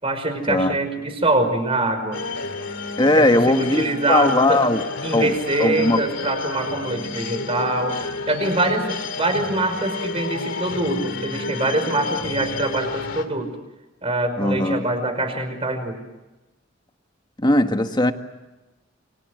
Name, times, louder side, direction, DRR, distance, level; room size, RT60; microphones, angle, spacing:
voice 1, 0.0-2.2 3.1-4.6 5.0-8.0 8.3-13.5 14.0-16.0, right 2 dB, 30° right, 8 dB, 5.3 m, -24 dB
sound 1, 2.1-13.2, left 3 dB, 90° left, 2.7 m, -30 dB
voice 2, 3.0-4.8 5.1-5.3 5.6-6.0 14.4-14.8 17.4-18.1, left 2 dB, 25° left, 7 dB, 1.6 m, -19 dB
29.0 x 25.0 x 7.9 m, 1.1 s
head